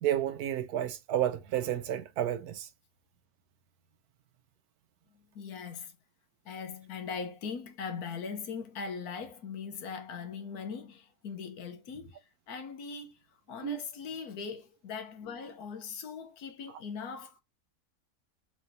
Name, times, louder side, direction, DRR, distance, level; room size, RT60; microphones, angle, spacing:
voice 1, 0.0-2.7 13.6-13.8, right 11 dB, 80° right, 1.2 m, -31 dB
voice 2, 5.3-5.9 6.5-12.2 12.5-13.1 13.5-17.4, left 5 dB, 85° left, 1.4 m, -40 dB
3.9 x 3.1 x 2.7 m
omnidirectional pair, 1.6 m